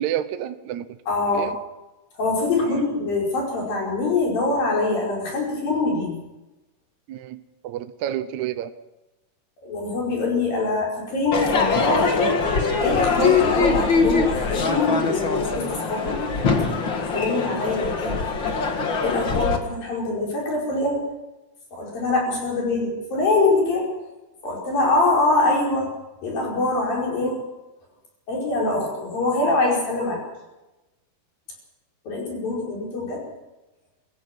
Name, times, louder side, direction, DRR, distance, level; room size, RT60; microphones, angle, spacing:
voice 1, 0.0-1.0 1.3-1.6 2.7-2.8 7.1-8.7 17.4-17.6 27.2-27.4, right 11 dB, 75° right, 11 dB, 1.7 m, -30 dB
voice 2, 1.1-1.5 2.2-6.2 9.6-12.4 12.7-16.2 17.1-18.2 19.0-21.0 21.7-23.9 24.4-25.9 26.2-27.4 28.3-30.2 32.1-33.2, left 2 dB, 60° left, -2 dB, 6.8 m, -24 dB
Crowd / Fireworks, 11.3-19.6, left 4 dB, 40° left, 1.9 m, -22 dB
26.5 x 16.5 x 6.1 m, 1.0 s
omnidirectional pair, 4.5 m